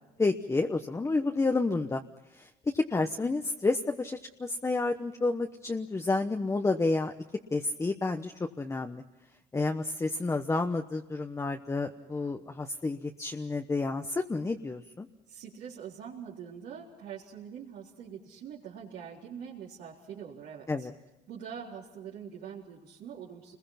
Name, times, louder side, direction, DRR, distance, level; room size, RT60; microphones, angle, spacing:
voice 1, 0.2-2.0 2.3-7.1 7.5-9.0 9.5-15.1 20.7-20.9, left 3 dB, 15° left, 4 dB, 1.1 m, -30 dB
voice 2, 15.3-20.9 21.3-23.6, right 7 dB, 75° right, -7 dB, 4.0 m, -44 dB
29.0 x 21.5 x 5.9 m, 1.0 s
cardioid pair, 110°, 17 cm